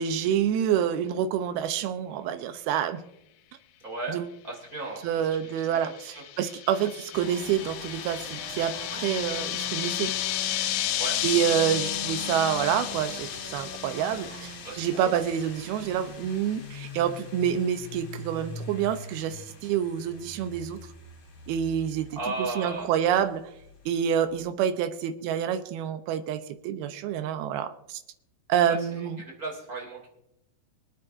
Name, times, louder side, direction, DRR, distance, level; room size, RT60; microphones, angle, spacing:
voice 1, 0.0-3.0 4.1-4.3 5.0-10.1 11.2-20.8 21.5-23.4 23.9-28.0 28.5-29.2, right 9 dB, 80° right, 9 dB, 2.6 m, -27 dB
voice 2, 3.8-5.4 5.8-6.2 11.0-11.2 14.6-15.2 22.2-22.9 28.7-30.1, right 3 dB, 25° right, -2 dB, 2.6 m, -36 dB
sound 1, 5.5-15.3, left 14 dB, 90° left, 2.7 m, -33 dB
sound 2, 7.1-24.4, left 3 dB, 50° left, 3.8 m, -41 dB
25.5 x 9.2 x 2.6 m, 0.82 s
omnidirectional pair, 4.6 m